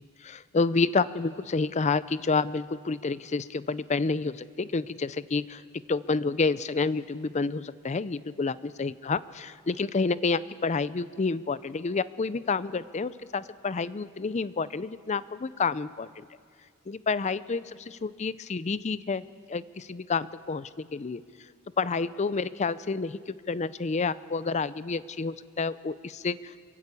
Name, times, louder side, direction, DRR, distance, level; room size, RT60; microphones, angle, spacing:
voice 1, 0.2-5.6 5.9-16.3 16.9-19.2 19.5-21.2 21.8-26.5, left 4 dB, 30° left, 17 dB, 0.5 m, -29 dB
23.5 x 15.5 x 8.3 m, 2.1 s
head